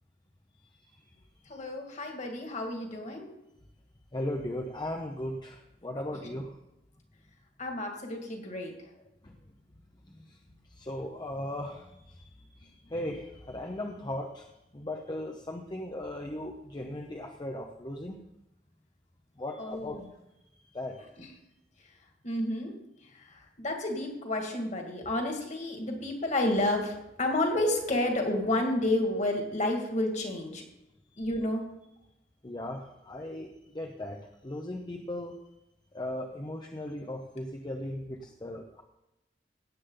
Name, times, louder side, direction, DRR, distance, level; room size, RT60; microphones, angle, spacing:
voice 1, 1.5-3.3 6.1-6.2 7.6-8.9 19.6-20.1 21.2-21.4 22.2-22.7 23.1-30.6 31.2-31.6, left 1 dB, 40° left, 2 dB, 2.2 m, -30 dB
voice 2, 4.1-6.6 9.2-9.4 10.1-10.4 10.7-12.2 12.6-14.5 14.7-18.2 19.4-20.0 20.7-21.1 31.1-31.3 32.4-35.4 35.9-38.8, left 1 dB, 25° left, 2 dB, 0.9 m, -37 dB
16.5 x 8.4 x 3.9 m, 0.88 s
head